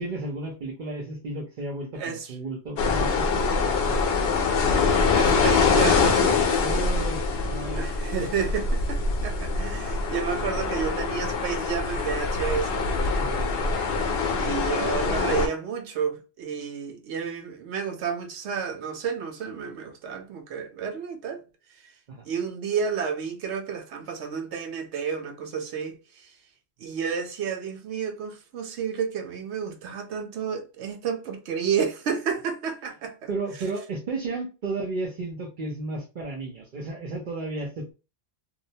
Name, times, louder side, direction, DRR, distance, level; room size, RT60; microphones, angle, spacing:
voice 1, 0.0-4.1 6.6-7.2 7.5-7.8 13.2-13.5 22.1-22.2 33.3-37.9, right 2 dB, 50° right, 0.8 m, -33 dB
voice 2, 1.9-2.3 5.1-6.2 7.7-12.8 14.4-21.4 22.3-26.0 26.8-33.3, right 6 dB, 85° right, 1.0 m, -31 dB
sound 1, 2.8-15.5, left 4 dB, 70° left, 0.8 m, -24 dB
2.7 x 2.0 x 2.6 m
omnidirectional pair, 1.1 m